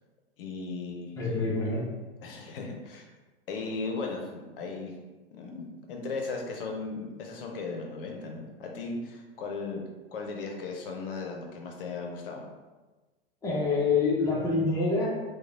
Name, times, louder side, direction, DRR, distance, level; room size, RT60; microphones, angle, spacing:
voice 1, 0.4-1.7 2.2-3.1 3.5-4.9 5.3-9.8 10.1-12.4, left 3 dB, 65° left, 1 dB, 0.6 m, -37 dB
voice 2, 1.2-1.9 13.4-15.1, left 3 dB, 10° left, -4 dB, 0.6 m, -26 dB
3.0 x 2.1 x 2.5 m, 1.2 s
hypercardioid pair, 105°, 31 cm